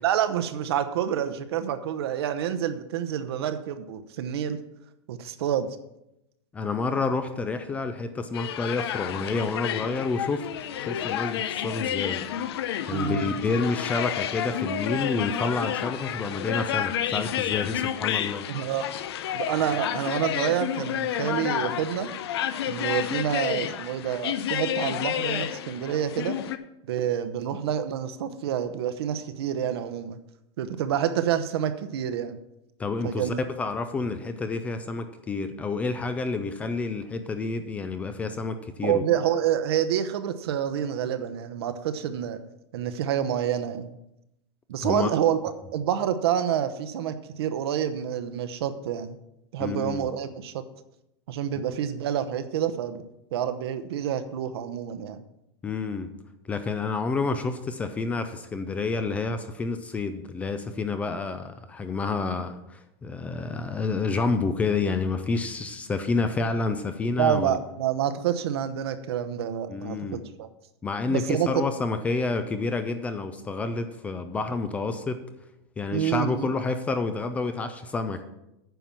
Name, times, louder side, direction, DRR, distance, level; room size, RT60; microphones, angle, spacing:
voice 1, 0.0-4.6 5.1-5.7 12.9-13.3 18.5-18.9 19.3-22.1 22.7-26.4 26.9-30.2 30.6-32.4 33.0-33.4 38.8-42.4 42.7-44.0 44.7-45.4 45.7-49.2 49.5-50.6 51.3-53.0 53.3-55.2 67.2-70.5 71.1-71.6 75.9-76.5, right 9 dB, 65° right, 9 dB, 0.9 m, -28 dB
voice 2, 6.5-10.5 10.8-12.2 12.9-18.5 32.8-39.0 44.8-45.1 49.6-50.1 55.6-56.1 56.5-67.6 69.7-70.2 70.8-75.2 75.8-78.2, left 4 dB, 10° left, 9 dB, 0.4 m, -29 dB
sound 1, 8.3-26.6, left 10 dB, 70° left, 0.7 m, -30 dB
9.2 x 6.0 x 7.2 m, 0.88 s
supercardioid pair, 170°, 14 cm